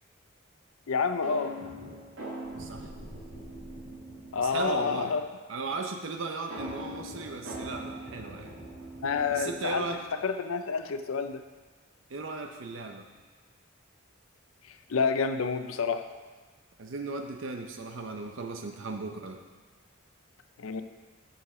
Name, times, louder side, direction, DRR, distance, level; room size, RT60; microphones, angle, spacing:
voice 1, 0.9-1.6 4.3-5.3 9.0-9.9 10.2-11.4 14.9-16.0 20.6-20.8, left 5 dB, 80° left, 9 dB, 0.5 m, -28 dB
sound 1, 1.2-5.0 6.5-10.1, right 1 dB, 85° right, 2.0 m, -42 dB
sound 2, 2.4-4.9, equal, 35° left, 2.1 m, -51 dB
voice 2, 2.6-2.9 4.4-5.2 5.5-8.5 9.3-10.0 12.1-13.1 16.8-19.4, right 3 dB, 65° right, 4 dB, 0.6 m, -36 dB
8.1 x 6.5 x 4.8 m, 1.4 s
head